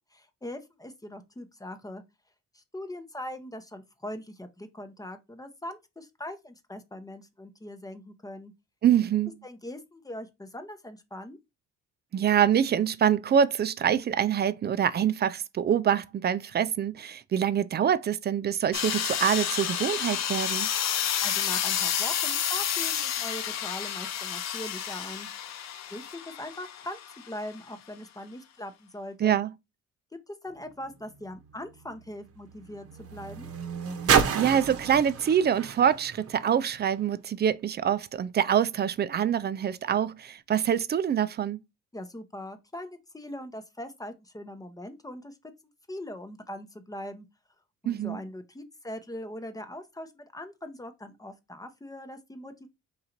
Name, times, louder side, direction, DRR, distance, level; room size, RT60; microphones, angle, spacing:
voice 1, 0.1-2.0 2.5-8.5 9.4-11.4 21.2-25.3 25.9-27.0 27.2-29.4 30.3-33.5 41.9-45.4 45.9-47.3 47.8-52.7, left 1 dB, 10° left, 0.7 m, -41 dB
voice 2, 8.8-9.3 12.1-20.7 29.2-29.5 34.3-41.6 47.9-48.2, right 9 dB, 35° right, 0.4 m, -25 dB
sound 1, 18.7-27.3, left 9 dB, 60° left, 0.6 m, -30 dB
sound 2, 30.6-37.1 37.9-38.0, right 7 dB, 50° right, 0.9 m, -31 dB
3.8 x 2.7 x 4.4 m
cardioid pair, 90°, 30 cm